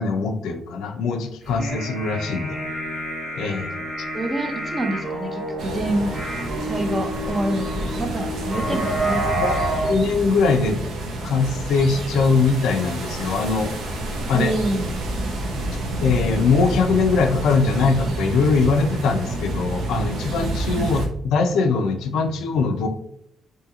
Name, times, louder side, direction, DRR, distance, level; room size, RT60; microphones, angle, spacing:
voice 1, 0.0-2.6 3.4-3.8 8.7-9.0 9.4-9.5 9.9-10.8 11.2-13.7 14.3-14.5 16.0-21.0 21.2-22.9, left 4 dB, 80° left, 6 dB, 0.3 m, -21 dB
sound 1, 1.5-9.9, right 1 dB, 50° right, 1.3 m, -29 dB
voice 2, 4.1-6.1 6.7-9.5 14.3-14.9 20.8-20.9, right 2 dB, 30° right, 5 dB, 0.5 m, -27 dB
sound 2, 5.6-21.1, right 1 dB, 75° right, 0.6 m, -29 dB
2.8 x 2.7 x 2.3 m, 0.73 s
cardioid pair, 90°, 0 cm